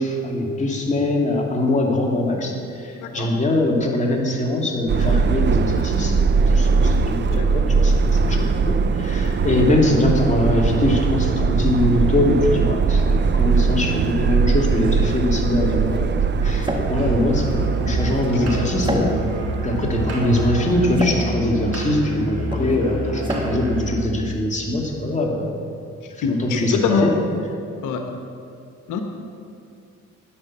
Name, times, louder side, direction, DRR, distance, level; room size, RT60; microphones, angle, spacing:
voice 1, 0.0-16.1 16.4-19.2 19.6-25.6 26.1-27.1, left 1 dB, 25° left, -1 dB, 2.6 m, -22 dB
voice 2, 2.9-3.3 7.3-7.5 26.2-27.1 27.8-28.0 28.9-29.0, left 5 dB, 90° left, 4 dB, 1.2 m, -23 dB
Subway metro underground, 4.9-21.0, right 5 dB, 35° right, 0.6 m, -21 dB
sound 1, 15.9-24.8, equal, 15° right, 1.8 m, -32 dB
Musical instrument, 16.9-24.1, right 1 dB, 55° right, 3.5 m, -28 dB
11.0 x 10.0 x 7.3 m, 2.5 s
cardioid pair, 90°, 30 cm